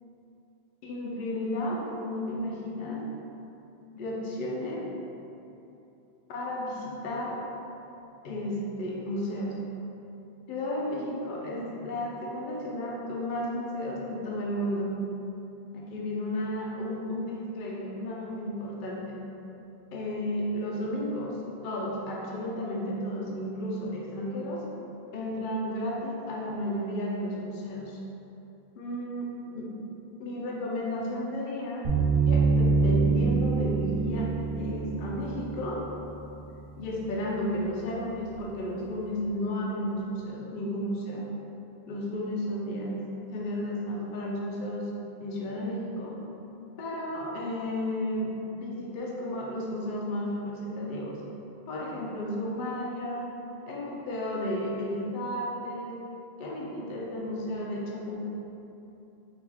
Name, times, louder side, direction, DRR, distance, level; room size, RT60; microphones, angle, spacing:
voice 1, 0.8-3.1 4.0-4.8 6.3-7.4 8.2-9.6 10.5-14.9 15.7-19.2 19.9-24.7 25.1-28.0 28.8-29.7 30.2-31.9 32.3-35.8 36.8-41.3 41.9-43.0 43.3-44.9 45.2-46.2 46.8-51.2 51.7-53.3 53.7-56.0 56.4-58.3, left 1 dB, 60° left, -3 dB, 0.6 m, -33 dB
sound 1, 31.8-37.0, right 4 dB, 60° right, 0.8 m, -26 dB
4.7 x 2.4 x 3.4 m, 2.9 s
omnidirectional pair, 1.1 m